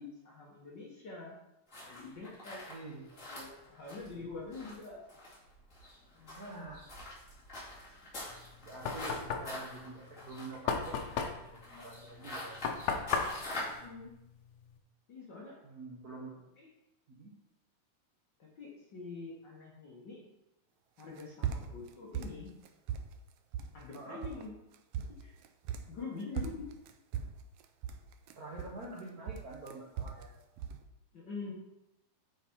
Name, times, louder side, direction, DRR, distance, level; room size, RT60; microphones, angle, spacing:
voice 1, 0.0-1.4 1.8-2.6 3.3-5.0 6.1-6.7 13.5-14.1 15.1-15.6 16.6-16.7 18.4-20.2 21.0-22.5 23.7-24.5 25.2-25.3 25.9-26.7 31.1-31.5, left 4 dB, 55° left, -3 dB, 1.3 m, -45 dB
sound 1, 1.7-13.9, left 1 dB, 25° left, 2.5 m, -45 dB
voice 2, 2.7-3.3 4.6-4.8 6.4-6.9 8.6-12.6 15.6-16.5 17.1-17.3 23.9-24.3 28.4-30.3, right 2 dB, 65° right, -3 dB, 0.9 m, -47 dB
Knock, 8.3-14.8, left 6 dB, 75° left, 2.0 m, -36 dB
sound 2, 21.0-21.9 22.1-23.2 23.5-24.0 24.2-24.5 24.7-26.0 26.4-29.0 29.3-30.3 30.6-30.8, right 8 dB, 90° right, 1.4 m, -38 dB
8.5 x 4.9 x 4.5 m, 0.90 s
omnidirectional pair, 3.4 m